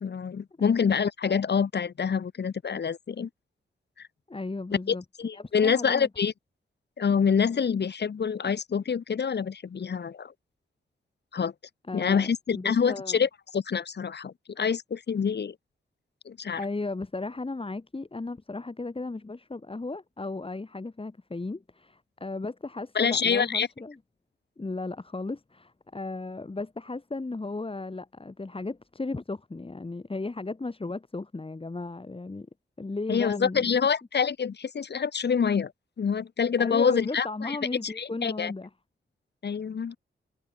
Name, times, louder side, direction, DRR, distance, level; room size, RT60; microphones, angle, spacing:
voice 1, 0.0-3.3 4.0-4.1 4.9-6.3 7.0-10.3 11.3-11.5 11.9-15.6 16.3-16.6 23.0-23.7 33.1-35.7 36.0-37.6 37.8-38.5 39.4-40.0, left 6 dB, 55° left, 1.7 m, -26 dB
voice 2, 4.3-5.0 5.3-6.1 11.9-13.3 16.6-24.0 24.6-32.5 32.8-33.7 36.6-38.7, left 3 dB, 25° left, 4.7 m, -35 dB
cardioid pair, 85°, 21 cm